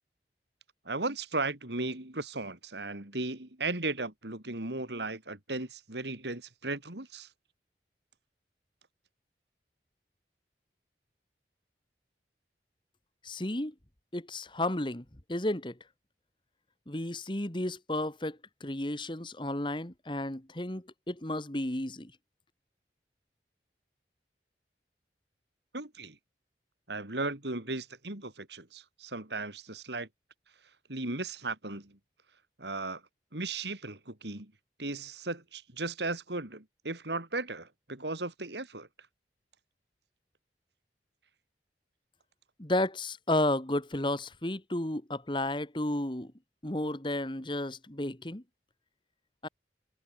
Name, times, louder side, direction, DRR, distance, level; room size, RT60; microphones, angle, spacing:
voice 1, 0.9-7.3 25.7-26.2 26.9-30.1 30.9-32.0 32.6-33.0 33.3-34.5 34.8-38.9, right 2 dB, 80° right, 3.6 m, -36 dB
voice 2, 13.2-13.7 14.1-15.7 16.9-22.1 42.6-46.3 46.6-48.4 49.4-49.5, left 1 dB, 25° left, 1.8 m, -32 dB
head